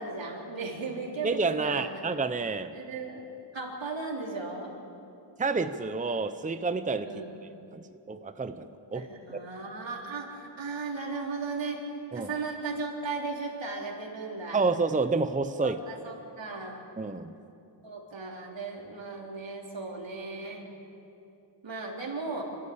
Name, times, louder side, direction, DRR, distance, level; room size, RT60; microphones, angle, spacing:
voice 1, 0.0-1.9 2.7-4.7 7.0-7.4 8.9-14.6 15.6-16.8 17.8-20.6 21.6-22.4, right 3 dB, 65° right, -1 dB, 3.7 m, -36 dB
voice 2, 1.2-2.8 5.4-7.1 7.7-9.1 9.3-9.4 12.1-12.3 14.5-15.8 17.0-17.3, right 4 dB, 15° right, 10 dB, 0.7 m, -29 dB
26.5 x 13.5 x 8.7 m, 2.7 s
wide cardioid pair, 100°, 47 cm